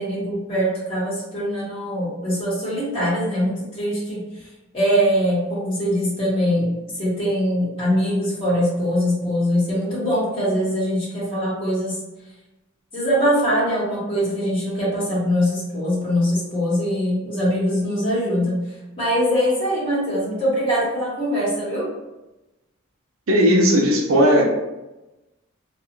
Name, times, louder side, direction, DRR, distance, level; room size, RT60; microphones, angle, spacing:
voice 1, 0.0-4.2 4.7-6.7 7.0-12.0 12.9-18.6 19.0-21.9, equal, 25° left, -8 dB, 1.2 m, -22 dB
voice 2, 23.3-24.4, equal, 75° right, 0 dB, 0.5 m, -16 dB
2.4 x 2.4 x 2.9 m, 1.0 s
head